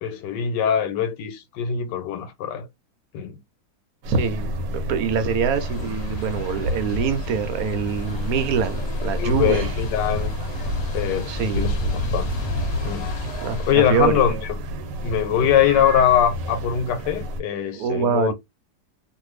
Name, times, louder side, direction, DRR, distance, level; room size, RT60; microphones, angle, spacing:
voice 1, 0.0-2.7 3.1-3.4 5.8-5.9 9.2-10.3 10.9-11.3 11.6-12.3 12.8-13.1 13.7-14.6 15.0-18.3, left 9 dB, 90° left, 1.3 m, -22 dB
sound 1, 4.0-17.4, equal, 85° right, 1.3 m, -31 dB
voice 2, 4.1-9.6 11.3-11.7 13.4-14.2 17.7-18.3, right 6 dB, 65° right, 1.0 m, -24 dB
sound 2, 5.5-13.7, left 2 dB, 65° left, 1.0 m, -30 dB
sound 3, 7.8-13.6, right 2 dB, 30° right, 0.4 m, -40 dB
2.6 x 2.5 x 3.1 m
omnidirectional pair, 1.9 m